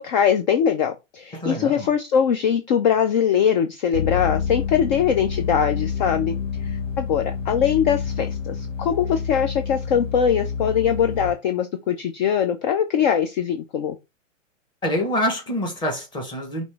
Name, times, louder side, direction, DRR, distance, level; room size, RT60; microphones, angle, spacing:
voice 1, 0.0-6.3 6.6-14.0, left 8 dB, 35° left, 0.5 m, -22 dB
voice 2, 1.3-1.9 14.8-16.6, equal, 10° left, 1.2 m, -26 dB
sound 1, 3.9-11.3, left 6 dB, 80° left, 1.6 m, -28 dB
5.2 x 3.1 x 3.3 m
hypercardioid pair, 145°, 38 cm